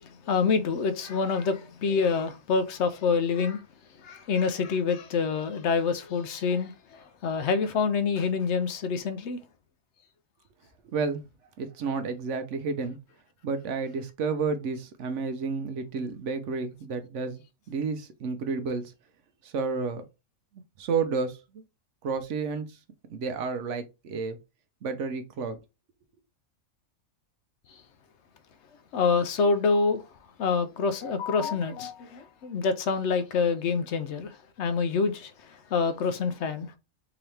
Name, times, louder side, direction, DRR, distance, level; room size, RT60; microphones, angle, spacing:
voice 1, 0.0-3.6 4.0-9.4 28.9-30.0 30.4-36.8, left 5 dB, 65° left, 0.7 m, -27 dB
voice 2, 10.8-11.2 11.6-13.0 13.4-17.4 17.7-18.9 19.4-20.0 20.8-21.6 22.0-22.8 23.1-24.4 24.8-25.6, right 4 dB, 65° right, 0.9 m, -31 dB
3.9 x 2.8 x 3.2 m
omnidirectional pair, 1.5 m